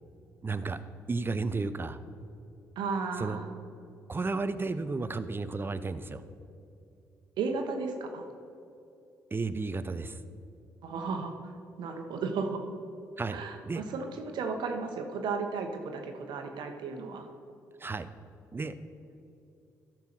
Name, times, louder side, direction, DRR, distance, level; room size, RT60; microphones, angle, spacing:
voice 1, 0.4-0.8 1.1-2.0 3.2-3.4 4.1-6.2 9.3-10.2 13.2-13.8 17.8-18.1 18.5-18.7, right 3 dB, 25° right, 13 dB, 0.6 m, -33 dB
voice 2, 2.8-3.5 7.4-8.2 10.8-11.3 11.8-12.6 13.3-17.3, right 4 dB, 70° right, 5 dB, 1.1 m, -34 dB
13.0 x 4.6 x 6.0 m, 2.7 s
hypercardioid pair, 50°, 8 cm